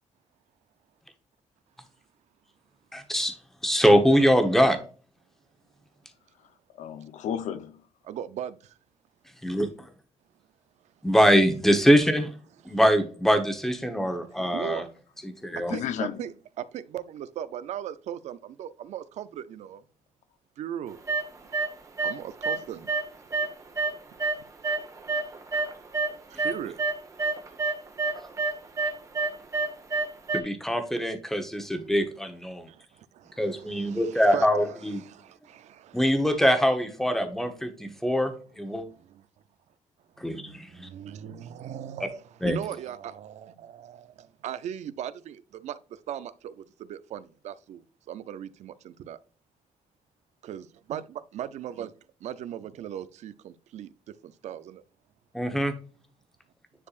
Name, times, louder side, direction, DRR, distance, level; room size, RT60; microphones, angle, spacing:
voice 1, 2.9-3.3 3.6-4.8 9.4-9.7 11.0-12.3 12.6-14.9 15.2-15.7 30.3-32.7 33.4-35.0 35.9-38.8 40.2-40.9 42.4-42.6 55.3-55.7, equal, 5° left, 1.1 m, -23 dB
voice 2, 6.8-7.8 14.0-14.5 15.7-16.2, left 9 dB, 85° left, 0.9 m, -34 dB
voice 3, 8.0-8.6 14.5-14.8 15.7-19.8 20.6-21.0 22.0-22.9 26.3-26.8 32.7-32.8 33.2-33.3 33.6-34.5 35.1-36.0 40.3-45.8 46.1-46.5 46.8-47.8 48.1-49.2 50.4-51.9 52.2-53.9 54.2-54.8, right 10 dB, 70° right, 0.5 m, -38 dB
sound 1, 21.1-21.7 22.0-22.6 22.9-26.1 26.4-30.4, right 3 dB, 25° right, 1.3 m, -28 dB
9.8 x 4.6 x 2.5 m
cardioid pair, 155°, 12 cm